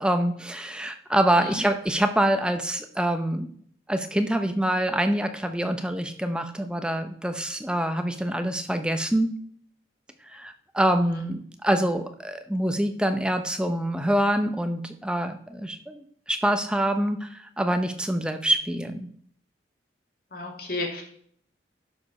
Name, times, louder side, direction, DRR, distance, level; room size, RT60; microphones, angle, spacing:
voice 1, 0.0-3.5 3.9-9.3 10.3-19.1, right 1 dB, 5° right, 8 dB, 0.6 m, -25 dB
voice 2, 20.3-21.0, left 2 dB, 55° left, 0 dB, 2.5 m, -32 dB
11.5 x 5.2 x 5.4 m, 0.63 s
head